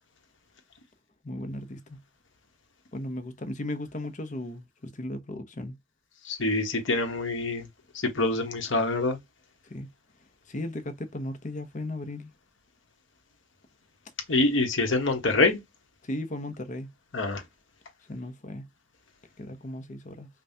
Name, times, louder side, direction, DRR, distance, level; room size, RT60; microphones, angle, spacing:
voice 1, 1.2-2.0 2.9-5.8 9.7-9.9 10.5-12.3 16.1-16.9 18.1-18.7 19.4-20.3, left 1 dB, 40° left, 0.7 m, -36 dB
voice 2, 6.2-7.7 8.1-9.2 14.3-15.6 17.1-17.4, left 2 dB, 90° left, 1.3 m, -25 dB
5.4 x 2.3 x 2.7 m
head